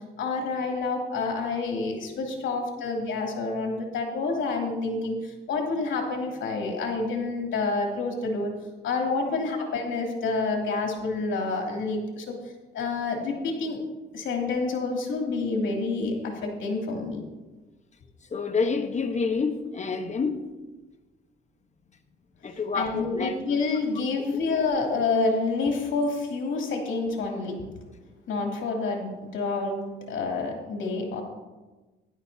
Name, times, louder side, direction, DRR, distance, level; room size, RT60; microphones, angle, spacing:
voice 1, 0.2-8.5 8.8-12.3 12.7-13.8 14.1-17.2 22.8-27.6 28.3-31.2, left 3 dB, 75° left, 2.8 m, -28 dB
voice 2, 18.3-20.4 22.4-23.3, left 4 dB, 35° left, 1.1 m, -28 dB
13.0 x 11.0 x 2.8 m
cardioid pair, 90°, 20 cm